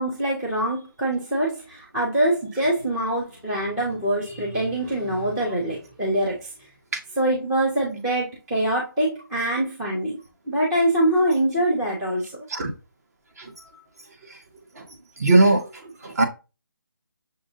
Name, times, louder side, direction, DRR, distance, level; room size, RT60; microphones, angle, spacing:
voice 1, 0.0-6.5 7.1-10.2 10.5-12.3, right 1 dB, 5° right, 0.4 m, -24 dB
voice 2, 15.2-15.6 16.0-16.2, right 2 dB, 45° right, 1.0 m, -17 dB
6.4 x 2.6 x 2.6 m
figure-of-eight pair, 165°, 12 cm